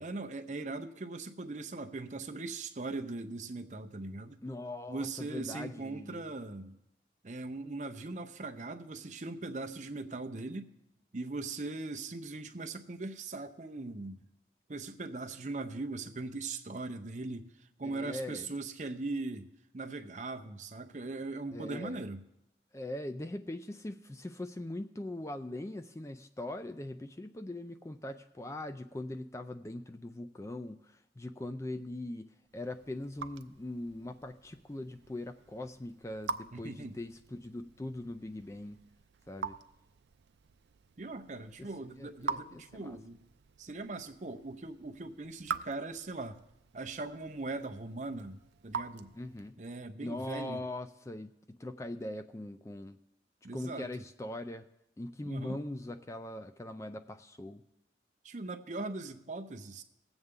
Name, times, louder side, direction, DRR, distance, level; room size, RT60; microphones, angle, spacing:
voice 1, 0.0-4.4 4.9-6.8 7.2-10.7 11.1-14.2 14.7-17.5 17.8-19.5 19.7-22.2 36.5-37.0 41.0-43.2 43.6-46.4 46.7-49.1 49.6-50.6 53.4-53.9 55.2-55.6 58.2-59.8, right 3 dB, 40° right, 6 dB, 0.7 m, -40 dB
voice 2, 4.4-6.3 17.8-18.5 21.5-22.0 22.7-38.8 39.3-39.6 41.6-43.0 49.1-49.5 50.0-51.3 51.6-53.0 53.5-54.7 55.0-57.6, left 1 dB, 15° left, 8 dB, 0.3 m, -41 dB
Raindrop / Drip, 32.5-49.7, right 5 dB, 80° right, 0.5 m, -45 dB
19.5 x 8.0 x 3.7 m, 0.87 s
head